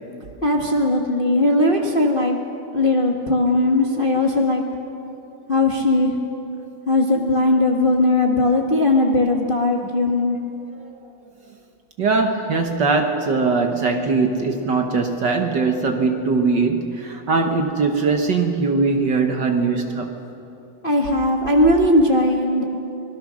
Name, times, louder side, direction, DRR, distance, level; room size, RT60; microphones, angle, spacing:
voice 1, 0.4-2.4 2.7-4.6 5.5-6.1 6.9-10.4 20.8-22.6, left 2 dB, 50° left, 1 dB, 0.6 m, -18 dB
voice 2, 12.0-20.1, right 4 dB, 55° right, 4 dB, 1.3 m, -21 dB
25.5 x 20.5 x 6.3 m, 2.9 s
omnidirectional pair, 3.4 m